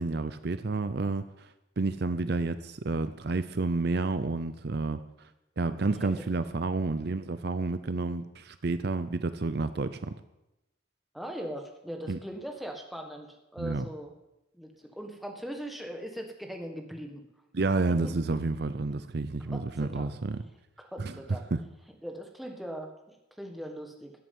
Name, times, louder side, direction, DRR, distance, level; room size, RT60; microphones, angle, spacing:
voice 1, 0.0-1.5 1.8-5.0 5.6-10.1 12.1-12.2 13.6-13.9 17.5-20.4 21.0-21.1 21.5-21.6, right 3 dB, 50° right, 12 dB, 0.6 m, -30 dB
voice 2, 11.1-14.1 14.5-17.2 19.5-20.2 20.8-21.5 22.0-24.1, equal, ahead, 2 dB, 1.5 m, -40 dB
13.5 x 7.6 x 9.4 m, 0.94 s
head